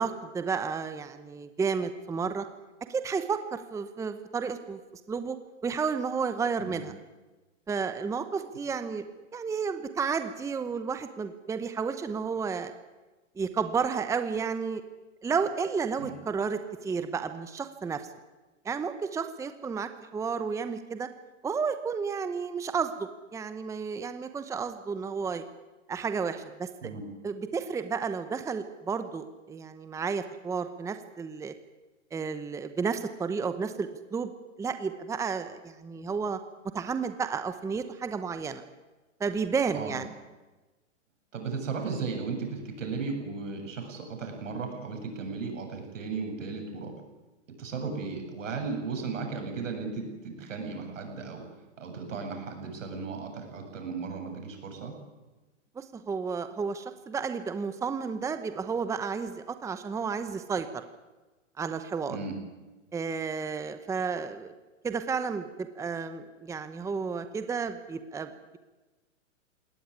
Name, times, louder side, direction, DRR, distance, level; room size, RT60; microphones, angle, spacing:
voice 1, 0.0-2.5 2.9-5.4 5.6-6.9 7.7-9.0 9.3-12.7 13.4-14.8 15.2-18.0 18.6-21.1 21.4-25.4 25.9-26.7 27.2-31.5 32.1-34.3 34.6-36.4 36.7-38.6 39.2-40.1 55.8-60.8 61.6-62.2 62.9-64.5 64.8-68.6, right 5 dB, 10° right, 10 dB, 0.9 m, -32 dB
voice 2, 41.3-46.9 47.6-51.4 51.8-54.9 62.1-62.3, right 4 dB, 80° right, 4 dB, 7.6 m, -35 dB
20.5 x 18.5 x 9.7 m, 1.2 s
hypercardioid pair, 135°, 37 cm